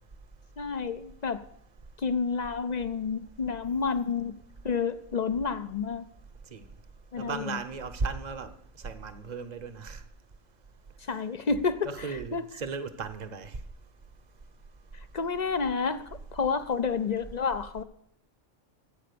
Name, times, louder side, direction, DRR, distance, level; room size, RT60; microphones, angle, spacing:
voice 1, 0.6-1.4 2.0-4.3 4.6-6.0 7.1-7.5 11.1-12.4 15.1-16.0 16.3-17.8, left 5 dB, 45° left, 12 dB, 0.6 m, -29 dB
voice 2, 7.2-8.5 8.8-10.0 11.8-13.5, right 4 dB, 40° right, 9 dB, 1.0 m, -35 dB
15.0 x 8.6 x 6.9 m, 0.72 s
omnidirectional pair, 1.3 m